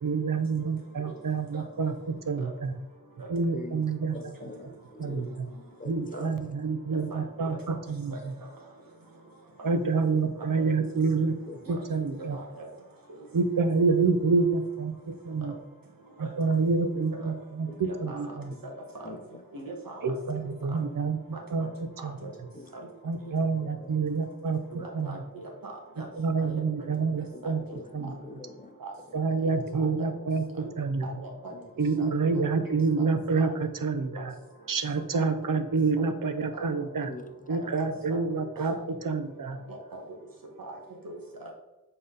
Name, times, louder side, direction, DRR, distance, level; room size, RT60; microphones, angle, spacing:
voice 1, 0.0-2.7 3.3-4.5 5.0-5.5 5.8-8.3 9.6-11.3 11.7-12.4 13.3-15.5 16.2-18.5 20.0-21.2 21.5-21.7 22.0-22.2 23.0-24.6 24.9-25.2 26.2-27.6 27.9-28.2 29.1-31.1 31.8-34.3 34.7-37.1 37.5-39.6, right 4 dB, 70° right, 0.8 m, -28 dB
voice 2, 3.5-3.8 4.1-6.4 11.5-11.8 12.2-12.3 17.7-17.8 18.0-18.4 19.0-19.7 22.5-22.7 23.6-23.9 27.3-27.4 27.7-28.7 31.5-31.7 37.0-37.3 37.6-38.1 38.6-38.7, left 2 dB, 25° left, 0.8 m, -45 dB
voice 3, 6.9-7.6 8.4-8.5 11.7-11.8 12.3-12.7 16.2-16.3 17.2-17.3 17.8-18.3 18.6-18.7 19.0-19.2 19.5-20.1 20.4-20.8 22.0-22.3 22.7-22.9 23.2-23.3 24.7-26.1 26.4-26.6 27.4-27.5 28.8-28.9 29.7-30.1 30.6-30.7 31.0-31.5 32.0-32.4 33.0-33.1 33.4-33.5 34.2-34.3 35.1-35.3 36.5-36.6 37.5-37.6 38.1-38.2 38.7-38.8 39.7-40.0 40.6-40.8 41.0-41.5, right 2 dB, 90° right, 1.5 m, -41 dB
7.4 x 3.9 x 3.9 m
wide cardioid pair, 65°, 34 cm